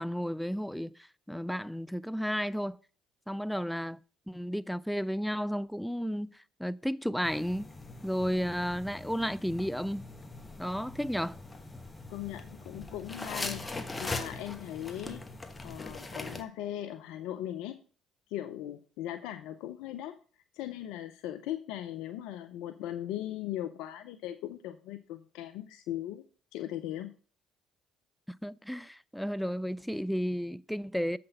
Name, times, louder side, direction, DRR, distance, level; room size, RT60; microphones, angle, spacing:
voice 1, 0.0-2.8 3.3-4.0 4.3-7.7 8.0-10.0 10.6-11.4 28.4-31.2, equal, ahead, 0.4 m, -33 dB
sound 1, 7.2-16.4, left 2 dB, 20° left, 1.2 m, -41 dB
voice 2, 12.1-15.2 15.6-17.8 18.3-20.2 20.5-26.2 26.5-27.1, left 12 dB, 75° left, 0.5 m, -39 dB
7.6 x 6.0 x 5.7 m
hypercardioid pair, 60°, 0 cm